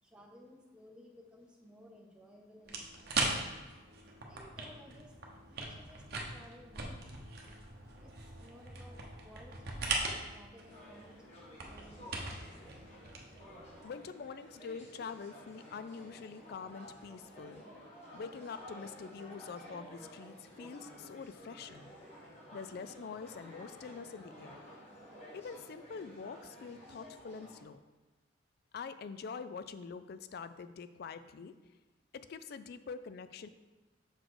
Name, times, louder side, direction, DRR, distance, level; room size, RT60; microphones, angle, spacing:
voice 1, 0.0-3.1 4.3-5.1 5.5-7.3 8.0-9.7 10.3-12.5, equal, 5° right, -1 dB, 0.6 m, -57 dB
sound 1, 2.7-13.8, right 3 dB, 50° right, 0.9 m, -40 dB
sound 2, 10.7-27.6, equal, 35° left, 1.3 m, -53 dB
voice 2, 13.8-17.6 18.1-21.9 22.5-24.6 25.3-27.8 28.7-31.5 32.1-33.5, left 5 dB, 50° left, 13 dB, 0.3 m, -45 dB
6.4 x 4.0 x 4.8 m, 1.2 s
head